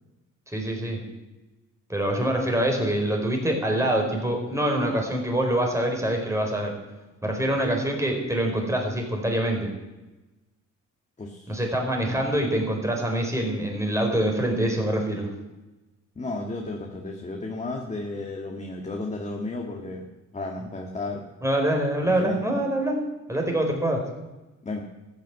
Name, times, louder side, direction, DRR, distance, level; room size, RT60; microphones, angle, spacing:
voice 1, 0.5-1.0 1.9-6.7 7.2-9.7 11.5-15.3 21.4-23.0 23.3-24.0, right 1 dB, 10° right, 1 dB, 4.5 m, -25 dB
voice 2, 11.2-11.6 16.2-20.1 20.3-21.3 22.2-22.4 24.6-24.8, left 2 dB, 25° left, 1 dB, 2.0 m, -33 dB
14.0 x 9.2 x 8.3 m, 1.1 s
cardioid pair, 90°, 30 cm